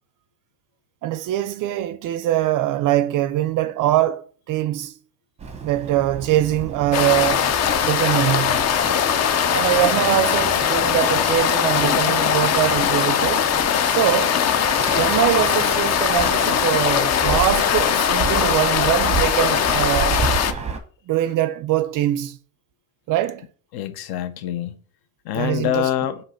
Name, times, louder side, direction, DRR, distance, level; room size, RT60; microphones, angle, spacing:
voice 1, 1.0-5.0 5.6-7.5 7.8-8.7 9.5-13.5 13.9-14.4 14.9-20.2 21.1-22.4 23.1-23.4 25.3-25.9, right 13 dB, 50° right, 0.4 m, -22 dB
Bird, 5.4-20.8, right 5 dB, 15° right, 0.8 m, -32 dB
sound 1, 6.9-20.5, left 8 dB, 40° left, 0.6 m, -20 dB
voice 2, 23.7-24.8 25.2-26.2, left 11 dB, 60° left, 0.9 m, -25 dB
7.9 x 2.9 x 5.6 m
cardioid pair, 160°, 42 cm